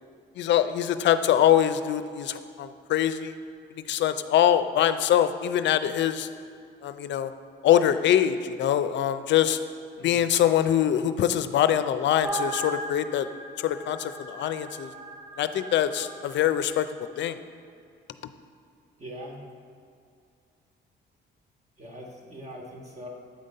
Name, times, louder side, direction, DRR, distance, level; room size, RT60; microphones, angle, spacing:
voice 1, 0.4-3.4 3.7-6.3 6.8-7.3 7.6-9.6 10.0-13.3 13.6-14.9 15.4-16.9 17.2-17.4, left 10 dB, 65° left, 11 dB, 0.4 m, -23 dB
sound 1, 12.2-16.7, right 1 dB, 10° right, 0.7 m, -38 dB
voice 2, 19.0-19.4 21.8-23.1, equal, 35° right, 0 dB, 1.4 m, -41 dB
8.5 x 3.8 x 5.3 m, 2.4 s
cardioid pair, 90°, 20 cm